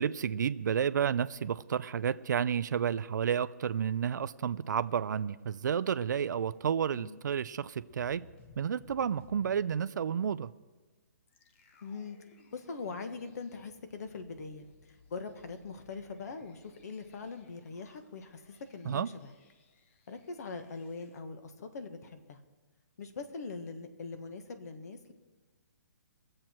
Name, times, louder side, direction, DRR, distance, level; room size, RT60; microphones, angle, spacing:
voice 1, 0.0-8.2 8.6-10.5 18.9-19.1, right 8 dB, 70° right, 14 dB, 0.4 m, -31 dB
sound 1, 7.8-9.6 11.3-21.2, left 4 dB, 40° left, 1.2 m, -61 dB
voice 2, 11.8-12.2 12.5-19.3 20.1-22.4 23.0-25.1, left 4 dB, 60° left, 8 dB, 1.5 m, -42 dB
22.0 x 7.7 x 4.5 m, 1.2 s
hypercardioid pair, 150°, 10 cm